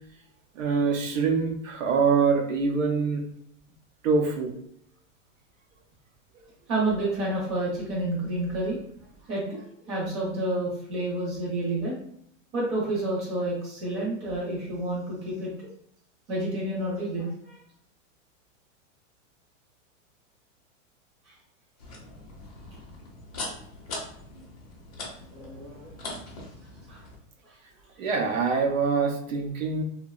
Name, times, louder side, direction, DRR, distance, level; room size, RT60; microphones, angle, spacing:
voice 1, 0.6-3.2 4.0-4.6 28.0-29.8, right 5 dB, 75° right, 3 dB, 0.6 m, -24 dB
voice 2, 6.7-8.8 9.3-12.0 12.5-15.5 16.3-17.6 25.3-25.9 26.9-27.0 27.4-27.5, right 1 dB, 20° right, -5 dB, 0.6 m, -29 dB
sound 1, 21.8-27.2, left 2 dB, 30° left, 0.5 m, -41 dB
2.7 x 2.1 x 2.3 m, 0.66 s
supercardioid pair, 180°, 39 cm